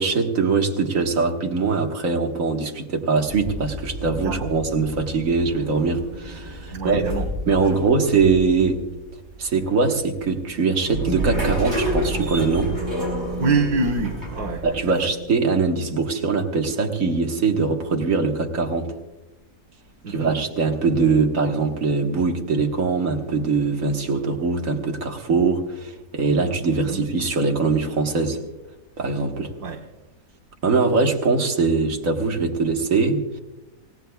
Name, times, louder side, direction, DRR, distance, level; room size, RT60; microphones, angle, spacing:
voice 1, 0.0-7.0 7.5-8.8 9.4-12.7 14.6-19.0 20.1-28.4 29.0-29.5 30.6-33.4, right 4 dB, 60° right, 2 dB, 1.9 m, -22 dB
sound 1, 3.3-14.9, right 1 dB, 30° right, 4.9 m, -30 dB
voice 2, 6.7-7.8 13.4-14.9 20.0-20.3 26.7-27.0 29.6-29.8, right 3 dB, 85° right, 2 dB, 1.6 m, -26 dB
28.0 x 17.0 x 2.3 m, 1.0 s
omnidirectional pair, 1.6 m